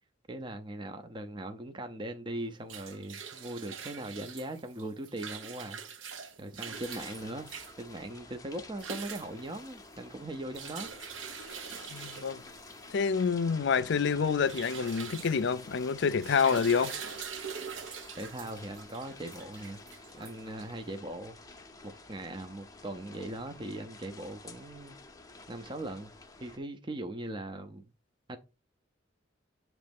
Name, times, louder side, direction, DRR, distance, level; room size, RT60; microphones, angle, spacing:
voice 1, 0.3-5.8 6.4-7.5 7.8-10.9 18.2-19.8 20.1-21.3 21.8-25.0 25.5-26.1 26.4-27.8 28.3-28.4, right 1 dB, 25° right, 0.6 m, -40 dB
sound 1, 2.4-20.9, right 6 dB, 80° right, 0.9 m, -44 dB
sound 2, 6.7-26.6, left 3 dB, 20° left, 0.7 m, -51 dB
voice 2, 11.9-12.4 12.9-16.9, left 6 dB, 65° left, 0.5 m, -27 dB
7.7 x 3.1 x 5.2 m
head